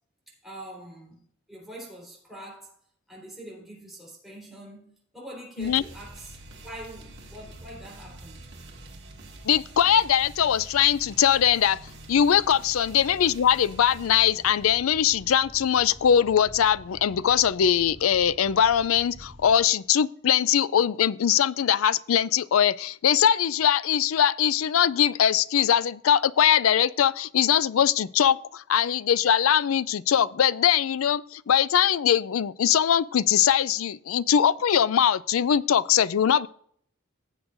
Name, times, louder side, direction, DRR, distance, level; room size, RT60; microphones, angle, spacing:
voice 1, 0.3-1.2 1.5-2.8 3.1-6.4 6.6-8.4, right 1 dB, ahead, 3.9 m, -44 dB
sound 1, 5.6-19.6, right 1 dB, 55° right, 2.0 m, -46 dB
voice 2, 9.5-11.8 12.1-36.5, left 9 dB, 85° left, 0.4 m, -21 dB
16.0 x 7.9 x 2.6 m
head